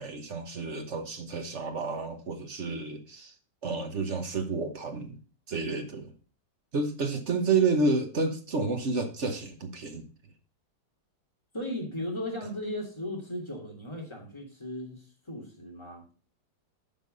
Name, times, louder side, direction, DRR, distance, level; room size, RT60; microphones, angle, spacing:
voice 1, 0.0-3.3 3.6-5.2 5.5-6.1 6.7-10.1, right 3 dB, 45° right, 1.3 m, -30 dB
voice 2, 11.5-16.0, left 1 dB, 15° left, 2.7 m, -36 dB
9.4 x 5.7 x 5.4 m
omnidirectional pair, 1.9 m